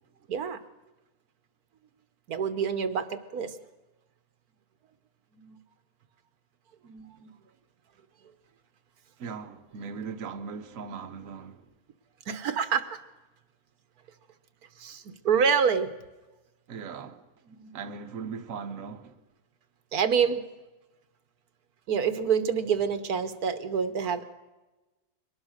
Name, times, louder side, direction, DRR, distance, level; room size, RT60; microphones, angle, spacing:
voice 1, 0.3-0.6 2.3-3.6 5.3-5.6 6.8-7.3 12.3-13.0 14.8-15.9 17.5-17.7 19.9-20.4 21.9-24.3, right 6 dB, 85° right, 1.6 m, -27 dB
voice 2, 9.2-11.7 16.7-17.3 17.7-19.2, right 5 dB, 65° right, 1.4 m, -39 dB
23.0 x 19.0 x 6.5 m
omnidirectional pair, 1.6 m